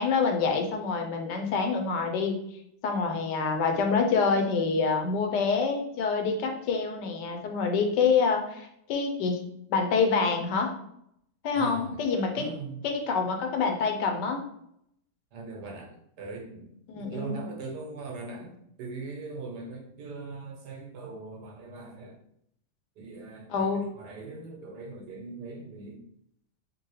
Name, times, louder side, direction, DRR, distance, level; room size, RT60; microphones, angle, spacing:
voice 1, 0.0-2.4 2.8-9.4 9.7-10.7 11.4-12.5 12.8-14.4 16.9-17.4 23.5-23.8, left 5 dB, 85° left, 4 dB, 1.3 m, -26 dB
voice 2, 11.5-12.0 12.3-12.8 15.3-16.7 17.0-22.2 23.0-26.0, right 3 dB, 80° right, 0 dB, 1.5 m, -40 dB
3.8 x 2.7 x 3.1 m, 0.72 s
omnidirectional pair, 1.8 m